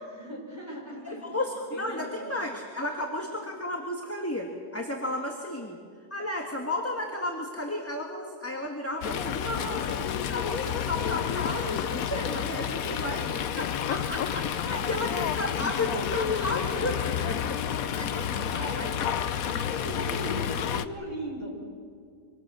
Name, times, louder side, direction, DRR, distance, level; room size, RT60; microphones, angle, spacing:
voice 1, 0.1-1.2 1.7-2.3 3.2-3.3 12.1-12.2 12.9-13.3 14.6-14.9 18.5-18.8 19.6-21.5, equal, 15° right, -2 dB, 6.4 m, -38 dB
voice 2, 1.1-5.8 6.1-13.3 13.6-17.4 17.7-19.8, left 1 dB, 10° left, 1 dB, 1.8 m, -33 dB
Fowl, 9.0-20.9, left 8 dB, 70° left, 1.2 m, -30 dB
25.0 x 25.0 x 6.4 m, 2.2 s
omnidirectional pair, 1.6 m